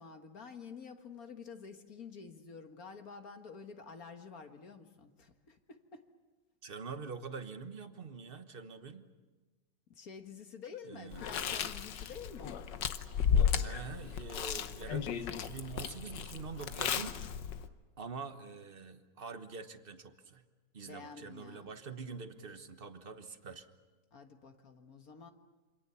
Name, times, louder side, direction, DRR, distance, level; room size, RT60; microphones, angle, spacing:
voice 1, 0.0-6.1 9.9-12.7 20.9-21.8 24.1-25.3, left 5 dB, 55° left, 6 dB, 2.0 m, -49 dB
voice 2, 6.6-9.1 10.8-11.3 13.6-17.2 18.0-20.4 20.7-23.7, right 5 dB, 35° right, 9 dB, 1.3 m, -45 dB
Chewing mastication, 11.1-17.7, left 8 dB, 85° left, 1.7 m, -34 dB
27.5 x 25.5 x 7.0 m, 1.3 s
omnidirectional pair, 1.9 m